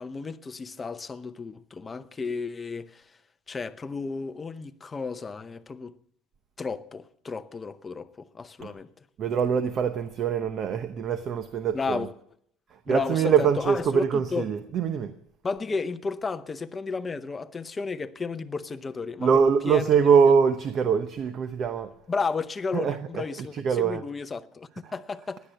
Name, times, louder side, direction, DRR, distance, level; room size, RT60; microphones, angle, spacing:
voice 1, 0.0-3.0 3.5-6.0 6.6-8.9 11.7-12.1 12.9-14.5 15.4-19.9 22.1-25.4, left 4 dB, 20° left, 0.7 m, -33 dB
voice 2, 9.2-12.1 12.9-15.1 19.2-21.9 22.7-24.0 24.8-24.9, right 6 dB, 40° right, 0.8 m, -23 dB
16.5 x 10.5 x 6.8 m
cardioid pair, 145°, 0 cm